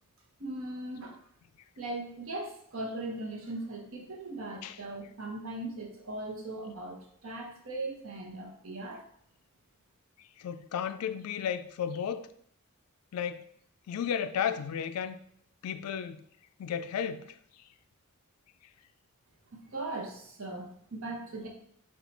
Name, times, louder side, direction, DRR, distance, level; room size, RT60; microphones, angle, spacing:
voice 1, 0.4-1.2 1.8-9.0 19.7-21.5, right 2 dB, 65° right, 0.8 m, -39 dB
voice 2, 10.2-12.3 13.1-13.4 13.9-15.2 15.6-16.2 16.6-17.4, left 8 dB, 90° left, 0.3 m, -33 dB
4.3 x 2.3 x 4.0 m
head